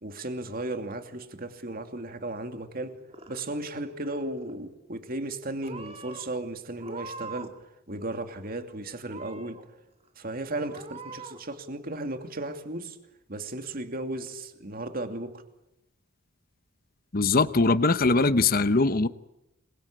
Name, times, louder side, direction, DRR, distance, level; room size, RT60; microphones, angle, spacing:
voice 1, 0.0-3.0 3.3-7.5 7.9-9.6 10.2-13.0 13.3-15.4, right 2 dB, 45° right, 2.7 m, -35 dB
Purr / Meow, 2.8-3.7 4.0-4.6 5.2-5.4 5.6-6.2 6.8-7.6 7.9-8.6 9.0-9.6 10.1-10.2 10.7-11.4, right 3 dB, 30° right, 2.3 m, -43 dB
voice 2, 17.1-19.1, left 3 dB, 45° left, 0.9 m, -21 dB
27.0 x 22.5 x 8.6 m
head